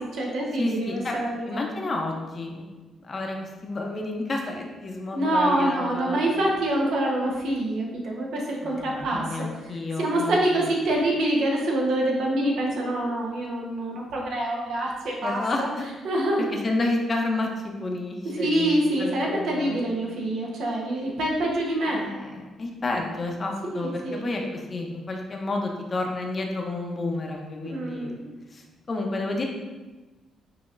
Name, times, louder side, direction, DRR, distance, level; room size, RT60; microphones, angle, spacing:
voice 1, 0.0-1.6 5.1-9.5 10.0-15.7 16.0-16.4 18.3-22.2 23.7-24.5 27.6-28.3, right 1 dB, 75° right, -2 dB, 1.0 m, -26 dB
voice 2, 0.6-1.2 1.4-2.6 3.0-6.4 8.6-10.7 15.2-15.9 16.4-19.9 21.9-28.1 28.5-29.4, left 2 dB, 35° left, 1 dB, 0.7 m, -30 dB
5.9 x 2.8 x 2.5 m, 1.2 s
cardioid pair, 90°, 0 cm